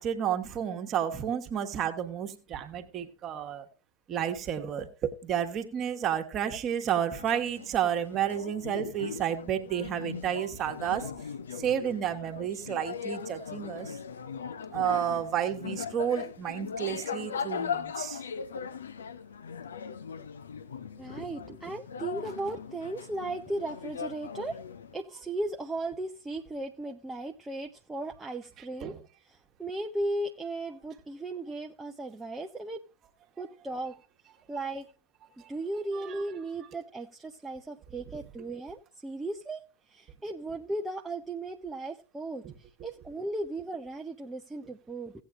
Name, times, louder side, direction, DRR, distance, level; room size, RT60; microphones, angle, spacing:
voice 1, 0.0-3.7 4.1-11.1 11.5-14.0 14.7-18.2 28.8-29.0 35.4-35.5 35.9-36.2 42.4-42.5, right 9 dB, 30° right, 1.4 m, -31 dB
sound 1, 7.1-25.0, left 6 dB, 70° left, 0.7 m, -39 dB
voice 2, 21.0-24.6 24.9-32.8 33.4-34.0 34.5-34.9 35.5-39.6 39.9-42.4 42.8-45.1, right 2 dB, 10° right, 0.7 m, -36 dB
17.0 x 8.4 x 2.5 m
figure-of-eight pair, 90°, 0 cm